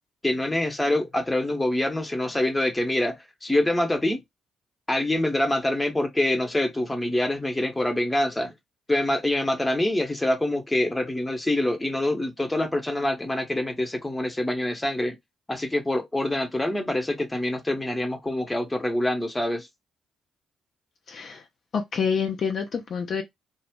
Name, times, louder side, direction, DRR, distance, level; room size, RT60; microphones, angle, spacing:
voice 1, 0.2-4.2 4.9-8.5 8.9-15.2 15.5-19.7, left 1 dB, 15° left, 0.9 m, -25 dB
voice 2, 21.1-21.4 21.7-23.2, left 6 dB, 55° left, 0.5 m, -27 dB
2.4 x 2.0 x 3.5 m
hypercardioid pair, 45°, 0 cm